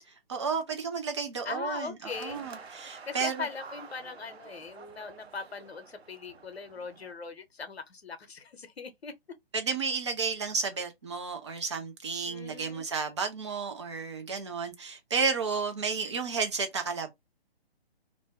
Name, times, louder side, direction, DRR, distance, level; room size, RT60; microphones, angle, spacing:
voice 1, 0.3-3.5 9.5-17.1, right 5 dB, 30° right, 0.5 m, -32 dB
voice 2, 1.4-2.4 3.1-9.1 12.2-12.9, left 4 dB, 75° left, 0.8 m, -40 dB
sound 1, 2.1-7.1, right 5 dB, 80° right, 0.6 m, -48 dB
2.5 x 2.1 x 3.0 m
figure-of-eight pair, 140°, 31 cm